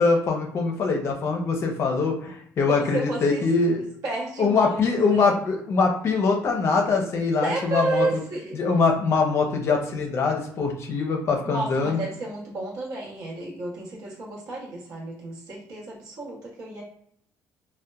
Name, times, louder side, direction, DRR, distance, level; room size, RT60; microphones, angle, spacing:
voice 1, 0.0-3.8 4.4-8.1 8.6-12.0, left 4 dB, 45° left, 2 dB, 0.5 m, -23 dB
voice 2, 2.7-3.4 4.0-4.8 5.1-5.3 7.4-8.6 11.4-16.8, right 2 dB, 70° right, -5 dB, 0.8 m, -31 dB
2.7 x 2.1 x 2.2 m, 0.67 s
cardioid pair, 120°, 6 cm